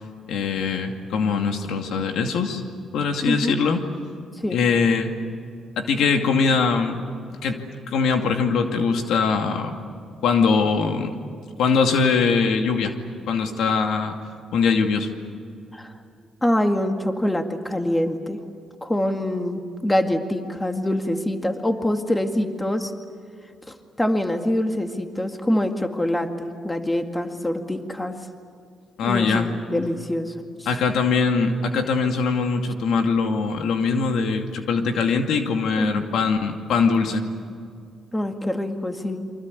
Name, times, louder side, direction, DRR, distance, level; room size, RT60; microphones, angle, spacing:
voice 1, 0.3-2.6 2.9-3.8 4.5-5.1 5.8-9.7 10.2-11.1 11.6-12.9 13.3-14.1 14.5-15.1 29.0-29.5 30.7-37.3, left 5 dB, 80° left, 4 dB, 2.4 m, -22 dB
voice 2, 3.3-3.6 4.4-4.6 15.7-15.9 16.4-18.4 18.8-22.9 23.7-28.2 29.0-30.7 35.8-36.1 38.1-39.2, left 1 dB, 10° left, 5 dB, 2.1 m, -25 dB
28.5 x 24.5 x 8.4 m, 2.3 s
cardioid pair, 90°, 0 cm